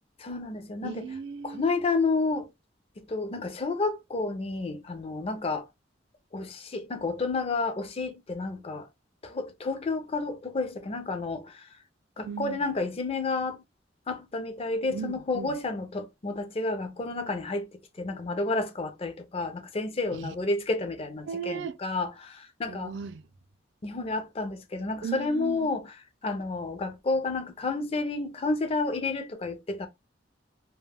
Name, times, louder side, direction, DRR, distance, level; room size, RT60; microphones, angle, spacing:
voice 1, 0.2-1.1 1.4-2.5 3.0-5.7 6.3-8.9 9.2-11.7 12.2-13.6 14.1-17.7 18.0-22.9 23.8-29.9, left 3 dB, 30° left, 0.4 m, -30 dB
voice 2, 0.8-1.7 12.2-12.7 14.9-15.6 20.1-20.3 21.3-21.8 22.7-23.3 25.0-25.7, right 7 dB, 65° right, 0.3 m, -37 dB
2.2 x 2.1 x 3.3 m
head